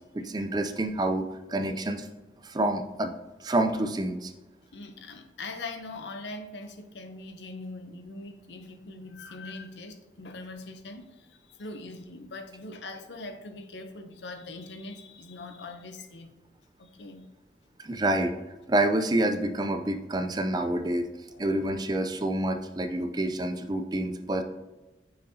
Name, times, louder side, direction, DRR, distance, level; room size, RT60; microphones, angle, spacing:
voice 1, 0.0-2.1 2.4-3.1 3.4-4.3 17.8-18.3 18.7-21.1 21.4-24.4, right 1 dB, 20° right, 7 dB, 0.4 m, -28 dB
voice 2, 4.7-16.3 16.8-17.3 21.3-21.4, left 2 dB, 85° left, 7 dB, 0.7 m, -42 dB
6.4 x 5.8 x 2.7 m, 1.1 s
head